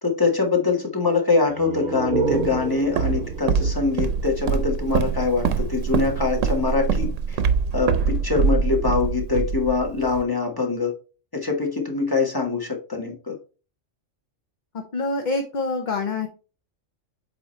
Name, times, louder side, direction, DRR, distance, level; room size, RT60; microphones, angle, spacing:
voice 1, 0.0-7.4 7.7-10.9 11.3-13.3, left 4 dB, 20° left, 1 dB, 1.3 m, -23 dB
sound 1, 1.4-5.0, right 5 dB, 50° right, 0.7 m, -29 dB
Walk footsteps, 2.3-10.2, right 5 dB, 85° right, 1.0 m, -24 dB
voice 2, 14.9-16.3, left 3 dB, 45° left, 4 dB, 0.9 m, -25 dB
8.1 x 3.0 x 4.3 m, 0.34 s
omnidirectional pair, 1.3 m